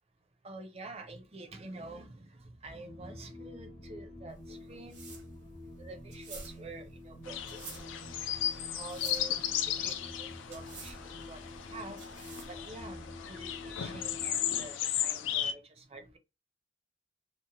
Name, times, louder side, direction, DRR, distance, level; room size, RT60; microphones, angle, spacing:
voice 1, 0.4-5.1 5.8-7.9 8.7-11.4 11.7-12.0 12.5-13.0 13.3-16.2, right 2 dB, 35° right, 0.6 m, -47 dB
sound 1, 2.8-14.7, left 2 dB, 35° left, 0.6 m, -48 dB
sound 2, 4.3-12.7, right 4 dB, 65° right, 0.9 m, -50 dB
sound 3, 7.3-15.5, left 10 dB, 85° left, 0.3 m, -35 dB
2.8 x 2.1 x 2.8 m
head